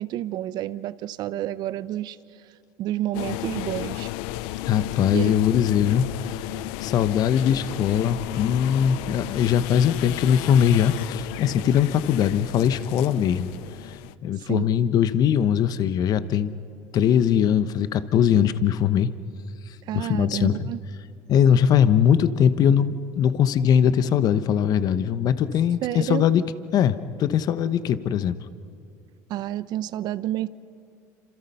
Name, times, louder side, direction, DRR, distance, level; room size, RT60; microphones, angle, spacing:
voice 1, 0.0-2.2 2.8-4.1 5.1-5.3 14.5-14.7 19.9-20.8 25.8-26.2 29.3-30.5, right 13 dB, 60° right, 16 dB, 0.8 m, -29 dB
sound 1, 3.1-14.1, left 16 dB, 80° left, 0.5 m, -34 dB
voice 2, 4.7-6.1 6.3-6.5 6.8-13.5 13.8-13.9 14.2-16.5 16.9-19.1 19.9-20.6 21.3-26.4 26.7-28.3, left 9 dB, 55° left, 13 dB, 1.0 m, -21 dB
28.0 x 26.5 x 5.6 m, 2.6 s
supercardioid pair, 90°, 8 cm